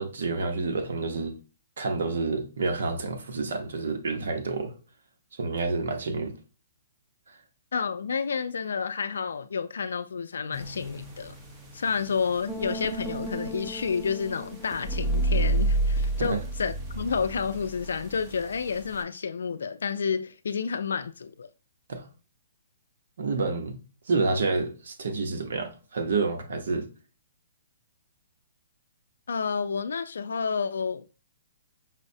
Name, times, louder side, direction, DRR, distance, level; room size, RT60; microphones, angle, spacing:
voice 1, 0.0-1.3 1.8-4.7 5.4-6.4 16.2-16.4 21.9-22.1 23.2-23.8 24.1-26.9, right 3 dB, 70° right, 0.8 m, -29 dB
voice 2, 7.7-11.3 11.7-21.5 29.3-31.1, left 6 dB, 85° left, 0.4 m, -30 dB
sound 1, 10.5-19.0, right 2 dB, 15° right, 0.7 m, -31 dB
5.6 x 2.0 x 2.7 m
hypercardioid pair, 160°, 0 cm